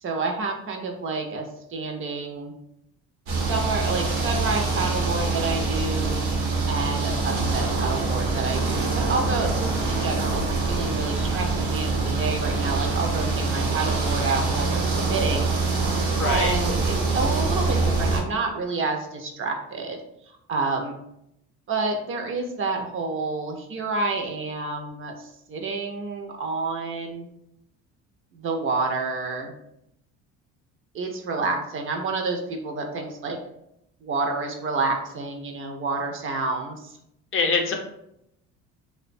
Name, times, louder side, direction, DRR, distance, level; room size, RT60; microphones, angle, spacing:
voice 1, 0.0-2.5 3.3-6.2 6.7-15.5 16.2-20.0 20.5-21.0 21.7-27.3 28.3-29.5 30.9-33.4 34.0-37.0, right 3 dB, 40° right, 3 dB, 0.4 m, -29 dB
sound 1, 3.3-18.2, right 3 dB, 80° right, 0.8 m, -25 dB
voice 2, 16.2-16.5 37.3-37.7, left 4 dB, 40° left, 3 dB, 0.5 m, -23 dB
2.4 x 2.1 x 2.5 m, 0.79 s
supercardioid pair, 85°, 33 cm